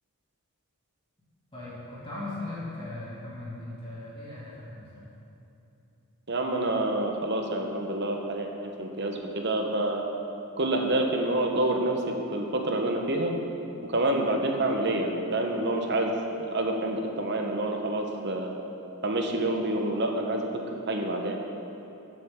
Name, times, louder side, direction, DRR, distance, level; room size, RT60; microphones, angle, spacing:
voice 1, 1.5-5.0, left 2 dB, 25° left, -9 dB, 2.4 m, -38 dB
voice 2, 6.3-8.5 8.8-10.0 10.6-13.3 13.9-18.5 19.0-20.5 20.9-21.4, right 1 dB, 50° right, 2 dB, 1.0 m, -27 dB
14.0 x 7.5 x 3.7 m, 2.9 s
head